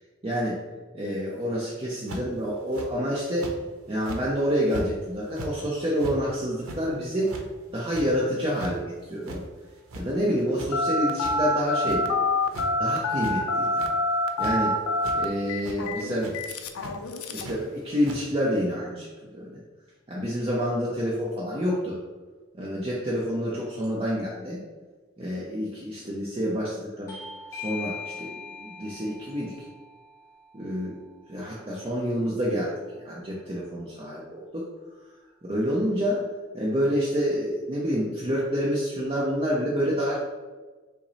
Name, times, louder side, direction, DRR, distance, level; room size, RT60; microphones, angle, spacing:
voice 1, 0.2-0.6 0.9-3.5 3.9-7.3 7.7-9.4 10.0-12.1 12.8-13.8 14.4-14.8 15.1-16.3 17.3-19.6 20.1-22.0 22.5-24.6 25.2-27.2 27.5-29.7 30.5-31.0 31.3-34.7 35.4-36.3 36.5-40.2, equal, 25° right, -5 dB, 0.6 m, -28 dB
sound 1, 2.1-2.4 2.7-2.9 3.4-3.6 4.0-4.2 4.7-4.9 5.2-5.5 6.0-6.2 6.6-6.8 7.2-7.4 7.9-8.1 8.4-8.7 9.2-9.4 9.8-10.3 10.5-10.7 11.2-11.3 11.8-12.0 12.4-12.7 13.1-13.4 13.6-13.9 14.4-14.5 15.0-15.2 15.6-15.8 16.2-16.3 16.8-16.9 17.4-17.5 18.0-18.2, right 1 dB, 80° right, 0.7 m, -38 dB
Telephone, 10.7-17.6, left 1 dB, 80° left, 0.4 m, -26 dB
Bell / Doorbell, 27.1-32.3, left 5 dB, 15° left, 0.7 m, -42 dB
5.8 x 2.0 x 4.0 m, 1.3 s
head